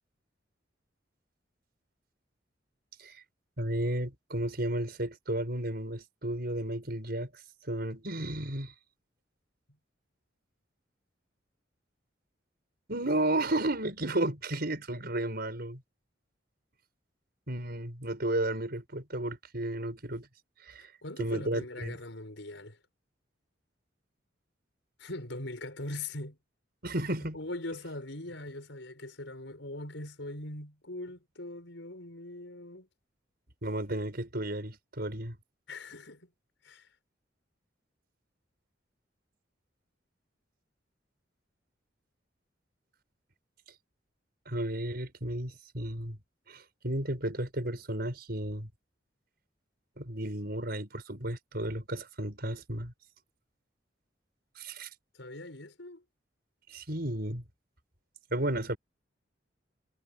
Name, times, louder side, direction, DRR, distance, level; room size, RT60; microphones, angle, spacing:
voice 1, 3.6-7.3 7.7-8.7 12.9-15.8 17.5-20.3 20.7-20.9 21.2-22.0 26.8-27.4 33.6-35.4 44.5-46.2 46.5-48.7 50.0-52.9 54.6-54.9 56.7-57.4 58.3-58.8, right 1 dB, 55° right, 6.2 m, -33 dB
voice 2, 20.8-22.8 25.0-26.4 27.3-32.9 35.7-36.3 36.6-36.9 55.1-56.0, left 2 dB, 75° left, 5.9 m, -41 dB
head